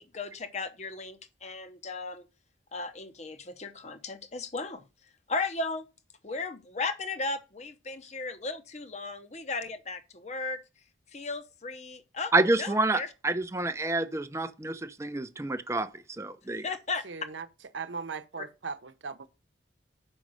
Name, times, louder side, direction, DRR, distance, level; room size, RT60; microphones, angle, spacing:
voice 1, 0.0-2.3 2.7-4.8 5.3-5.9 6.2-10.6 11.1-12.3 12.6-13.1 16.6-17.0, left 3 dB, 35° left, 0.8 m, -35 dB
voice 2, 12.3-16.7, right 2 dB, 15° right, 0.5 m, -28 dB
voice 3, 17.0-17.5 17.7-19.3, right 5 dB, 75° right, 0.8 m, -38 dB
6.2 x 5.3 x 6.1 m
head